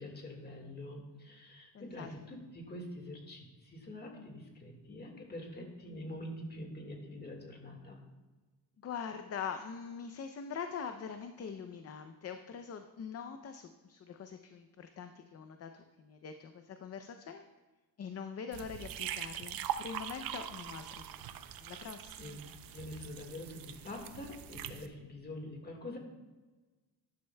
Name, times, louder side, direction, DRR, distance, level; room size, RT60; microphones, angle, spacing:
voice 1, 0.0-8.0 22.2-22.4 22.7-26.0, left 1 dB, 25° left, 2 dB, 1.7 m, -45 dB
voice 2, 1.7-2.1 8.8-17.4 18.0-22.3, left 6 dB, 40° left, 7 dB, 0.5 m, -43 dB
sound 1, 18.5-24.9, right 10 dB, 70° right, 0.6 m, -42 dB
12.5 x 11.5 x 2.2 m, 1.3 s
wide cardioid pair, 155°, 37 cm